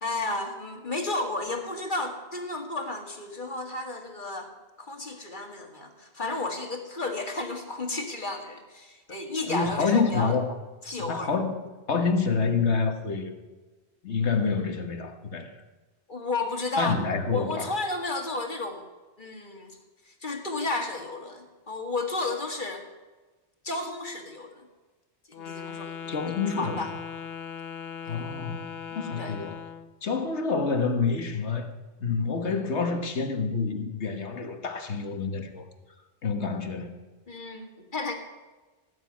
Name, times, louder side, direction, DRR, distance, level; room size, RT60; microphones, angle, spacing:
voice 1, 0.0-4.5 4.8-10.4 10.8-11.3 16.1-16.9 17.3-18.9 19.2-19.8 20.1-22.9 23.6-24.7 25.3-26.9 28.0-28.2 29.2-29.4 37.3-38.1, left 2 dB, 45° left, 4 dB, 2.0 m, -33 dB
voice 2, 9.5-10.5 11.0-11.5 11.9-13.4 14.0-15.6 16.8-17.7 26.1-26.8 28.1-29.6 30.0-31.7 32.0-35.6 36.2-37.0, left 4 dB, 80° left, 7 dB, 1.8 m, -27 dB
Wind instrument woodwind instrument, 25.3-29.9, left 7 dB, 65° left, 1.0 m, -39 dB
17.5 x 7.1 x 9.6 m, 1.2 s
omnidirectional pair, 1.1 m